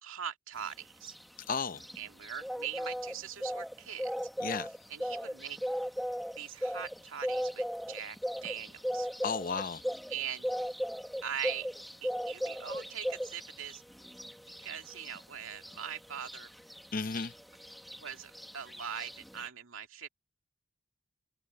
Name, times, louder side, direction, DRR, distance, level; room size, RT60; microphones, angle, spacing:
voice 1, 0.0-1.1 2.0-4.1 4.9-5.6 6.4-9.1 10.1-10.5 11.2-11.7 12.0-13.8 14.6-16.5 18.0-20.1, right 8 dB, 75° right, 2.2 m, -41 dB
sound 1, 0.6-19.5, equal, ahead, 1.1 m, -38 dB
voice 2, 1.5-1.8 4.4-4.7 9.2-9.8 16.9-17.3, left 5 dB, 40° left, 0.6 m, -33 dB
head